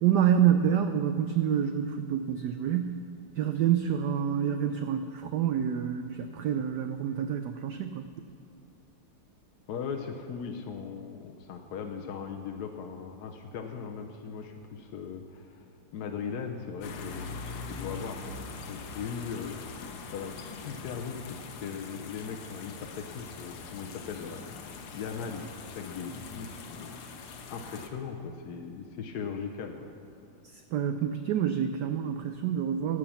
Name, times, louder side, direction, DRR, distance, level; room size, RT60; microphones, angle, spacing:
voice 1, 0.0-3.0 3.4-8.1 30.4-33.0, right 9 dB, 85° right, 8 dB, 0.9 m, -27 dB
voice 2, 9.7-15.6 15.9-19.6 20.1-26.9 27.5-29.9, left 6 dB, 65° left, 3 dB, 1.0 m, -39 dB
sound 1, 16.8-27.9, left 4 dB, 90° left, 1.9 m, -43 dB
16.0 x 6.2 x 7.2 m, 2.4 s
omnidirectional pair, 2.3 m